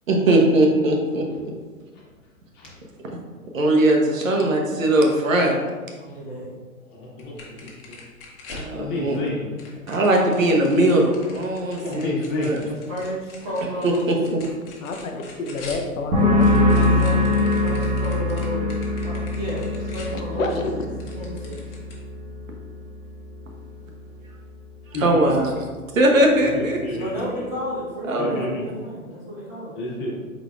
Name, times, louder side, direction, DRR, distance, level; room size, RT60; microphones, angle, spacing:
voice 1, 0.1-1.2 3.5-5.5 8.5-9.2 9.9-12.6 13.8-14.1 25.0-25.5 25.9-26.8 28.1-28.5, right 1 dB, 70° right, 1 dB, 1.0 m, -19 dB
voice 2, 5.1-5.6 6.0-6.5 12.6-14.2 16.8-21.8 26.9-29.8, equal, 10° right, -10 dB, 0.4 m, -33 dB
voice 3, 6.9-7.5 8.8-9.4 11.8-12.6 24.9-25.3 26.5-27.4 28.2-28.6 29.7-30.2, left 1 dB, 25° left, -5 dB, 1.4 m, -30 dB
sound 1, 7.2-9.2 9.6-15.9 16.1-20.7 21.0-21.9, left 3 dB, 40° left, 1.1 m, -43 dB
voice 4, 14.8-17.0 20.1-20.9, left 2 dB, 70° left, 3 dB, 0.7 m, -29 dB
sound 2, 16.1-23.6 23.9-24.4, left 2 dB, 30° right, 0.9 m, -23 dB
4.4 x 4.0 x 2.5 m, 1.4 s
figure-of-eight pair, 115°, 42 cm